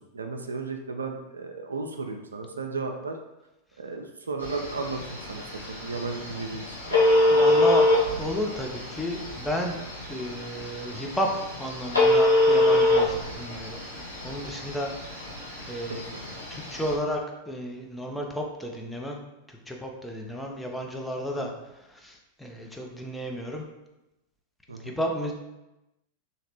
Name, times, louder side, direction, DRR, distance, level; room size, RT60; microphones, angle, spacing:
voice 1, 0.1-3.2 3.8-7.0 15.9-16.2 21.4-21.5 24.7-25.0, right 4 dB, 75° right, 5 dB, 0.3 m, -35 dB
Telephone, 4.4-16.9, left 1 dB, 85° left, 0.9 m, -25 dB
voice 2, 7.3-7.9 8.2-9.8 10.1-11.3 11.6-13.8 14.2-15.3 15.7-16.0 16.5-17.2 17.5-19.2 19.5-21.5 21.9-23.7 24.7-25.3, equal, 5° left, 0 dB, 0.5 m, -32 dB
2.9 x 2.8 x 2.9 m, 0.97 s
figure-of-eight pair, 90°, 0 cm